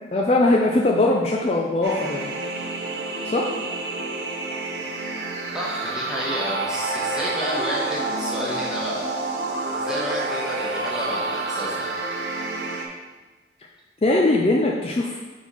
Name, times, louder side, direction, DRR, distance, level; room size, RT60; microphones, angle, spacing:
voice 1, 0.1-2.3 3.2-3.5 14.0-15.2, left 2 dB, 35° left, -1 dB, 0.4 m, -20 dB
sound 1, 1.8-12.9, right 2 dB, 75° right, 0.8 m, -29 dB
voice 2, 5.5-9.1 9.7-11.9, equal, 5° right, -7 dB, 1.4 m, -30 dB
4.5 x 4.4 x 5.4 m, 1.3 s
head